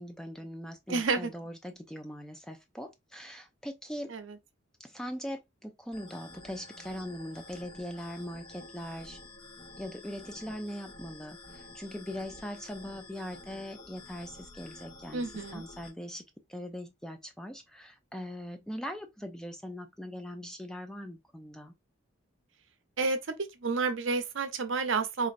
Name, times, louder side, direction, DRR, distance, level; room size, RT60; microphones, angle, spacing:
voice 1, 0.0-4.1 4.8-9.2 9.8-15.3 15.5-16.2 16.5-21.7, equal, 5° left, 0.4 m, -41 dB
voice 2, 0.9-1.3 4.1-4.4 15.1-15.6 23.0-25.3, right 4 dB, 65° right, 0.6 m, -30 dB
sound 1, 5.9-15.9, left 2 dB, 25° left, 0.8 m, -50 dB
4.2 x 2.5 x 2.5 m
head